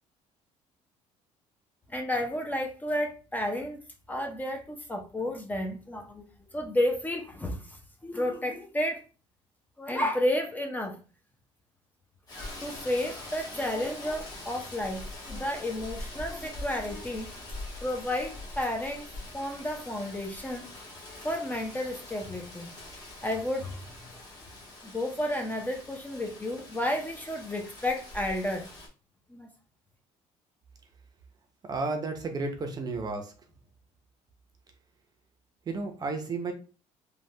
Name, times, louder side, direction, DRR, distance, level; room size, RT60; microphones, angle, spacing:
voice 1, 1.9-3.8 4.1-6.3 6.5-9.0 9.8-11.0 12.3-17.3 17.8-19.0 19.3-22.7 23.2-24.1 24.8-28.7 29.3-29.5, left 1 dB, 15° left, 0.5 m, -32 dB
Rain, 12.3-28.9, left 2 dB, 30° left, 1.3 m, -44 dB
voice 2, 31.7-33.3 35.7-36.5, right 3 dB, 30° right, 0.6 m, -32 dB
3.3 x 2.2 x 2.7 m
cardioid pair, 130°, 12 cm